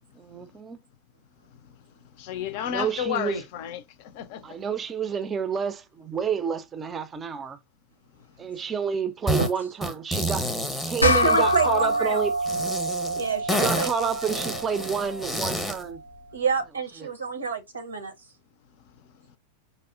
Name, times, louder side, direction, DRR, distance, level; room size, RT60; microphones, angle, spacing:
voice 1, 0.1-0.8 2.7-3.4 4.4-7.6 8.4-12.5 13.4-16.0 17.0-17.1, right 6 dB, 20° right, 0.5 m, -29 dB
voice 2, 2.2-4.6, left 10 dB, 50° left, 0.5 m, -32 dB
sound 1, 9.3-9.5 9.8-11.9 12.4-15.8, equal, 5° left, 0.7 m, -29 dB
sound 2, 11.0-15.8, equal, 85° left, 0.6 m, -26 dB
voice 3, 11.0-12.3 13.1-14.1 16.3-18.1, right 5 dB, 75° right, 0.7 m, -28 dB
5.2 x 2.0 x 2.4 m
figure-of-eight pair, 90°, 0 cm